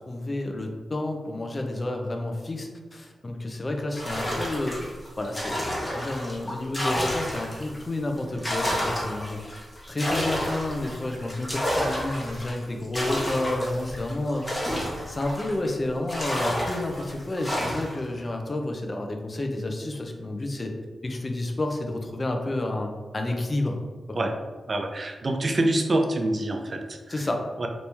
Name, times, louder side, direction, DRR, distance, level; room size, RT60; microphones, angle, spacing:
voice 1, 0.1-4.8 5.2-14.5 15.1-20.7 21.0-23.8 24.1-24.2 27.1-27.4, left 2 dB, 40° left, 3 dB, 0.6 m, -30 dB
sound 1, 3.9-7.8 8.2-15.7 16.1-18.0, equal, 20° left, 1.0 m, -30 dB
voice 2, 24.7-27.3 27.6-27.7, right 1 dB, 50° right, 4 dB, 0.5 m, -26 dB
3.0 x 2.6 x 3.4 m, 1.4 s
cardioid pair, 50°, 0 cm